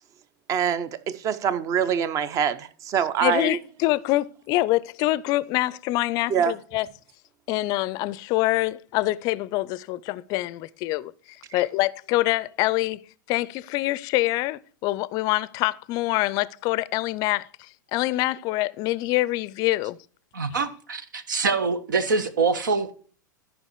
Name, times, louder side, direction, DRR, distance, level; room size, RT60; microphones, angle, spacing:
voice 1, 0.5-3.6 6.3-6.6 11.5-11.6, right 8 dB, 30° right, 0.8 m, -25 dB
voice 2, 3.2-6.9 7.5-13.0 13.3-20.0, left 18 dB, 35° left, 0.5 m, -25 dB
voice 3, 20.3-22.9, right 4 dB, 70° right, 1.3 m, -25 dB
13.5 x 5.5 x 4.6 m
figure-of-eight pair, 95°, 11 cm